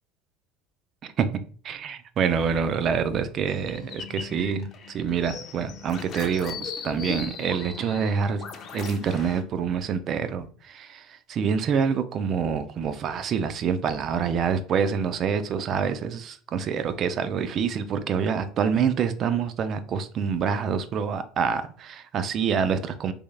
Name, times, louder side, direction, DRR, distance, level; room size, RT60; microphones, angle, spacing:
voice 1, 1.6-8.4 8.7-23.1, right 6 dB, 45° right, 0.4 m, -26 dB
sound 1, 3.5-9.4, left 6 dB, 45° left, 0.6 m, -38 dB
3.4 x 3.2 x 2.3 m
supercardioid pair, 90°, 0 cm